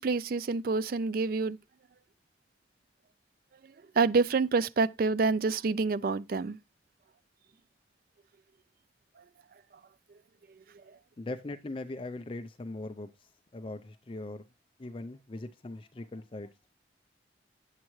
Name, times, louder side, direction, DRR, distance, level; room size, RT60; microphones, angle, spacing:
voice 1, 0.0-1.6 4.0-6.6, right 4 dB, 50° right, 0.4 m, -27 dB
voice 2, 11.2-13.1 13.5-14.4 14.8-16.5, left 2 dB, 30° left, 0.5 m, -40 dB
9.5 x 7.4 x 3.1 m
head